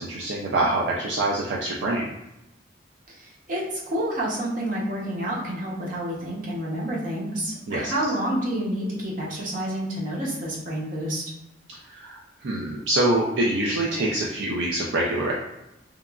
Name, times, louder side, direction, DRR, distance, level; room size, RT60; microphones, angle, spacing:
voice 1, 0.0-2.1 7.7-7.9 11.9-15.3, right 1 dB, 75° right, -3 dB, 0.4 m, -25 dB
voice 2, 3.1-11.2, right 1 dB, 45° right, -4 dB, 0.7 m, -29 dB
2.9 x 2.3 x 2.3 m, 0.90 s
head